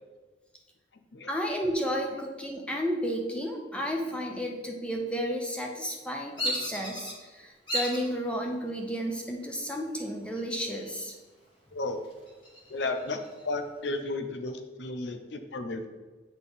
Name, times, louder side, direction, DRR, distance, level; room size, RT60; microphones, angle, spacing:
voice 1, 1.3-11.1, equal, 5° left, 1 dB, 0.7 m, -32 dB
Bird vocalization bird call bird song, 6.4-7.1 7.7-8.1 8.7-9.2 10.4-11.1 11.5-11.6 12.0-13.4, equal, 25° left, 2.1 m, -34 dB
voice 2, 12.7-15.8, left 2 dB, 65° left, 7 dB, 0.6 m, -33 dB
8.2 x 4.4 x 3.7 m, 1.3 s
head